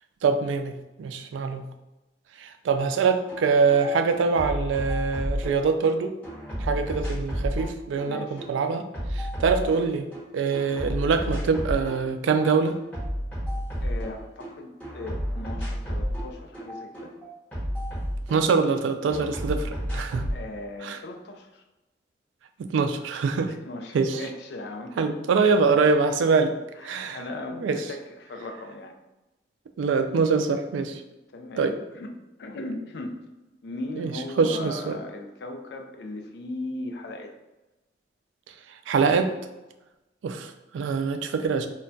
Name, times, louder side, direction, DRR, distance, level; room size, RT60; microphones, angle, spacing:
voice 1, 0.2-1.6 2.4-6.1 6.6-8.8 9.1-10.1 10.3-12.8 18.3-20.2 20.8-21.0 22.6-23.5 23.9-24.2 25.0-26.5 26.8-27.2 27.6-27.8 29.8-31.0 31.6-31.7 34.0-34.1 34.4-35.0 38.9-39.3 40.2-41.7, right 5 dB, 90° right, 7 dB, 0.3 m, -24 dB
sound 1, 3.3-3.4 3.7-5.9 6.2-10.2 10.5-12.0 12.3-14.5 14.8-18.8 19.1-20.4, equal, 10° left, 0.9 m, -31 dB
voice 2, 8.0-8.4 13.8-17.1 20.3-21.6 23.5-25.1 26.8-28.9 31.3-32.1 32.4-33.2 33.6-37.3, left 2 dB, 60° left, 4 dB, 0.4 m, -38 dB
2.2 x 2.2 x 3.8 m, 1.0 s
head